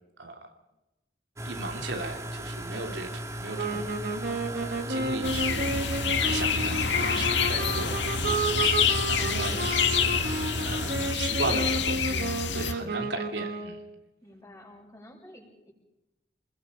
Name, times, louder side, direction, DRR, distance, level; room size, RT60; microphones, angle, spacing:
sound 1, 1.4-11.1, right 1 dB, 15° right, 2.5 m, -37 dB
voice 1, 1.4-3.1 3.4-4.0 4.5-5.7 6.2-13.8, right 3 dB, 75° right, 3 dB, 3.2 m, -37 dB
sound 2, 3.5-13.9, right 2 dB, 55° right, 2.6 m, -32 dB
sound 3, 5.2-12.7, left 6 dB, 85° left, 1.9 m, -27 dB
voice 2, 14.2-15.7, left 1 dB, 20° left, -1 dB, 7.1 m, -51 dB
29.5 x 21.0 x 5.3 m, 0.95 s
head